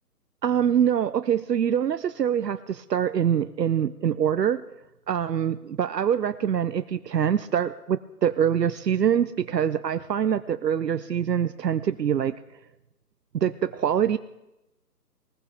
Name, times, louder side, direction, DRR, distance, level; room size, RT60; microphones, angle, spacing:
voice 1, 0.4-4.6 5.1-12.3 13.3-14.2, right 9 dB, 75° right, 12 dB, 0.7 m, -24 dB
20.0 x 19.5 x 3.5 m, 0.94 s
hypercardioid pair, 165°, 49 cm